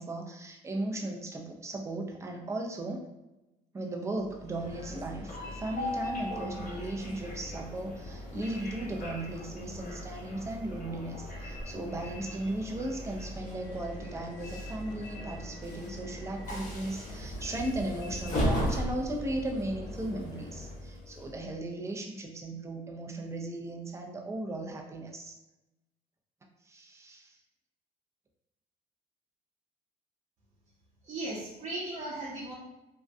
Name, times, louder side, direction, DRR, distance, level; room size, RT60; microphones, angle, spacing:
voice 1, 0.0-3.0 3.7-25.3 26.7-27.4, right 1 dB, 15° right, 1 dB, 0.4 m, -36 dB
Train, 4.3-21.5, equal, 50° left, 0.8 m, -38 dB
sound 1, 4.6-20.8, equal, 25° left, 1.0 m, -50 dB
sound 2, 5.4-6.4 8.4-9.4 11.4-12.4 14.4-15.4 17.4-18.4, left 2 dB, 90° left, 0.5 m, -50 dB
voice 2, 31.0-32.5, right 2 dB, 45° right, -5 dB, 0.8 m, -37 dB
2.6 x 2.1 x 2.3 m, 0.98 s
cardioid pair, 110°, 17 cm